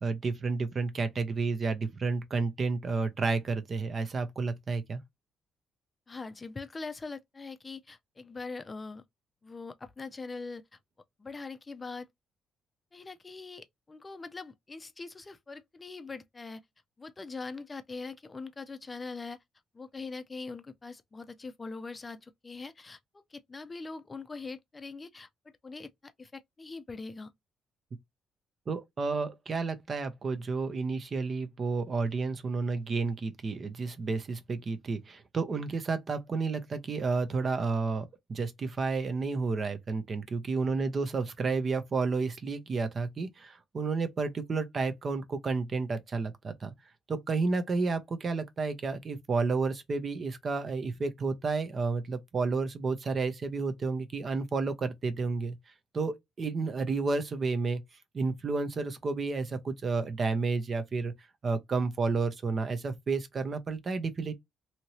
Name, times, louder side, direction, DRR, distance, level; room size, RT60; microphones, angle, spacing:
voice 1, 0.0-5.0 28.7-46.7 47.1-55.6 55.9-57.8 58.1-61.1 61.4-64.3, right 4 dB, 45° right, 0.6 m, -31 dB
voice 2, 6.1-9.0 9.4-10.6 11.2-12.1 12.9-16.6 17.0-19.4 19.7-27.3, left 4 dB, 25° left, 0.4 m, -42 dB
2.8 x 2.6 x 3.0 m
cardioid pair, 90°, 0 cm